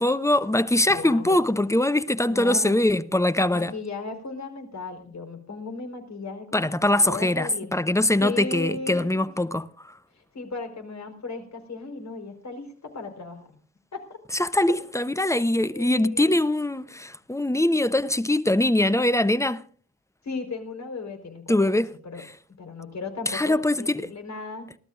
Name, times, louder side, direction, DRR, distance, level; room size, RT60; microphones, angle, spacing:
voice 1, 0.0-3.7 6.5-9.9 14.3-19.6 21.5-21.9 22.2-22.3 23.3-24.1, left 1 dB, 5° left, 0.8 m, -22 dB
voice 2, 0.9-1.4 2.3-2.8 3.5-7.7 8.2-9.1 10.1-13.6 13.9-14.0 14.7-14.8 15.7-16.4 20.2-22.2 22.6-24.7, left 3 dB, 40° left, 4.3 m, -36 dB
30.0 x 12.5 x 2.5 m
hypercardioid pair, 45°, 42 cm